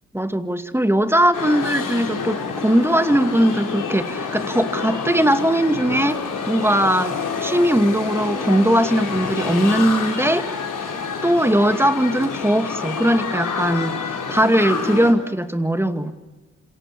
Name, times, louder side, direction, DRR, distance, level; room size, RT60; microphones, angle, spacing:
voice 1, 0.1-10.5 11.2-16.1, right 1 dB, 5° right, 9 dB, 2.2 m, -19 dB
sound 1, 1.3-15.1, left 5 dB, 50° left, 4.5 m, -28 dB
27.0 x 23.0 x 7.3 m, 1.3 s
hypercardioid pair, 40°, 39 cm